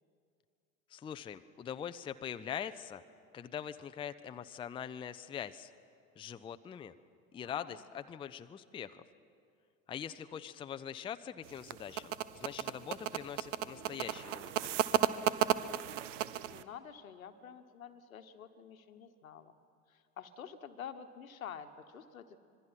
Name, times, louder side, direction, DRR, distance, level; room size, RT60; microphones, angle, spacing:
voice 1, 0.9-3.0 3.3-5.7 6.2-6.9 7.3-9.0 9.9-15.0, left 8 dB, 15° left, 10 dB, 0.5 m, -43 dB
voice 2, 7.4-7.9 10.3-10.4 16.4-19.6 19.9-22.4, left 8 dB, 75° left, 10 dB, 1.2 m, -49 dB
sound 1, 11.5-16.6, right 12 dB, 60° right, 0.8 m, -33 dB
26.0 x 21.5 x 5.8 m, 2.4 s
figure-of-eight pair, 70°, 42 cm